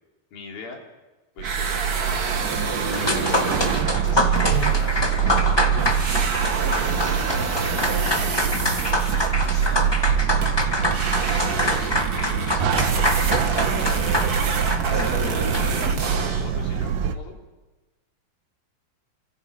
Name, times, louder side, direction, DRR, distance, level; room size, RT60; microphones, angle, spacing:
voice 1, 0.3-0.8 1.4-3.5 3.9-5.3 6.0-8.8 9.3-9.9 11.1-13.9 14.8-17.4, left 4 dB, 65° left, 0 dB, 5.2 m, -41 dB
sound 1, 1.4-17.2, right 7 dB, 70° right, 2.7 m, -25 dB
sound 2, 1.4-5.5 5.8-16.6, right 5 dB, 85° right, 0.8 m, -28 dB
sound 3, 2.9-15.9, left 1 dB, 25° left, 0.5 m, -26 dB
29.5 x 26.0 x 5.3 m, 1.2 s
omnidirectional pair, 4.5 m